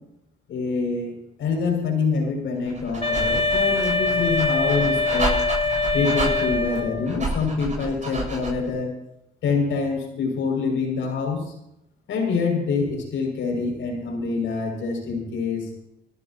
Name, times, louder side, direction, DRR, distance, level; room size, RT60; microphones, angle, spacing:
voice 1, 0.5-1.1 1.4-5.4 5.9-8.9 9.4-11.5 12.1-15.7, left 4 dB, 75° left, 1 dB, 7.0 m, -25 dB
Dog, 2.6-8.7, right 2 dB, 35° right, 8.0 m, -31 dB
Wind instrument woodwind instrument, 3.0-7.2, left 3 dB, 30° left, 1.1 m, -23 dB
28.5 x 14.5 x 3.1 m, 0.80 s
cardioid pair, 90°, 20 cm